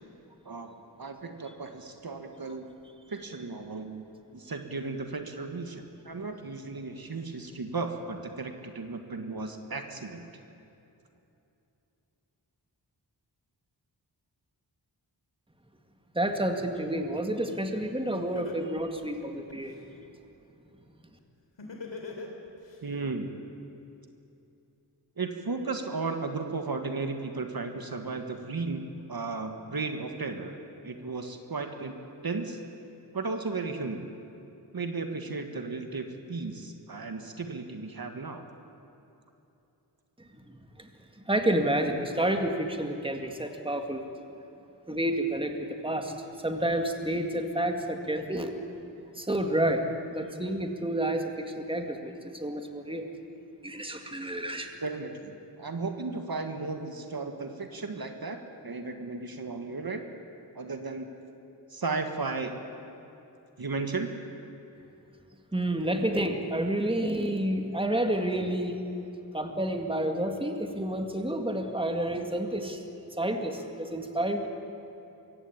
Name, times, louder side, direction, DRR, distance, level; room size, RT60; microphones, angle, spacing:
voice 1, 1.0-2.7 3.1-4.0 4.3-10.2 22.8-23.3 25.2-30.6 30.8-31.9 32.2-32.6 33.1-34.1 34.7-38.4 54.8-60.1 60.5-61.1 61.7-62.5 63.6-64.1, right 3 dB, 55° right, 5 dB, 1.6 m, -35 dB
voice 2, 16.1-19.8 40.8-40.9 41.3-44.0 44.9-46.1 46.4-48.5 49.2-49.8 50.1-53.0 53.6-54.7 65.5-68.8 69.3-72.8 73.2-74.5, right 1 dB, 10° right, 4 dB, 2.0 m, -29 dB
Laughter, 17.8-17.9 18.3-19.8 21.6-22.8, left 4 dB, 85° left, 3.2 m, -40 dB
24.0 x 16.0 x 8.7 m, 2.9 s
wide cardioid pair, 65°, 43 cm